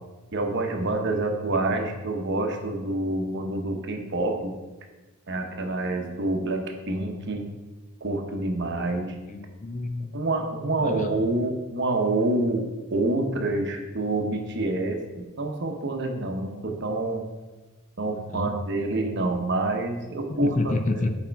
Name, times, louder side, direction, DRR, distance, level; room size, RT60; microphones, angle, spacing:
voice 1, 0.3-4.5 5.3-7.4 8.0-9.1 10.1-17.2 18.0-20.6 21.0-21.1, right 2 dB, 55° right, 3 dB, 0.9 m, -27 dB
voice 2, 9.3-10.2 10.8-11.3 18.1-18.5 20.3-21.2, left 2 dB, 35° left, 7 dB, 0.5 m, -29 dB
8.4 x 4.3 x 4.6 m, 1.2 s
head